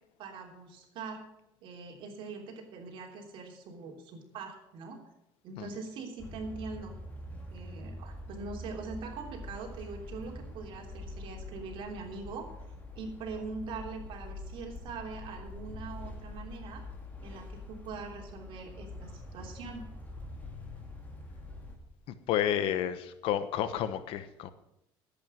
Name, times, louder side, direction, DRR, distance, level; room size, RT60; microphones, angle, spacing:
voice 1, 0.2-1.2 1.6-5.0 5.4-6.9 7.5-12.4 12.9-16.8 17.2-19.8, right 4 dB, 60° right, 1 dB, 3.2 m, -42 dB
sound 1, 6.2-21.8, left 1 dB, 15° left, 2.8 m, -45 dB
voice 2, 22.1-24.5, left 10 dB, 70° left, 13 dB, 1.1 m, -31 dB
11.0 x 8.4 x 7.7 m, 0.86 s
cardioid pair, 120°, 10 cm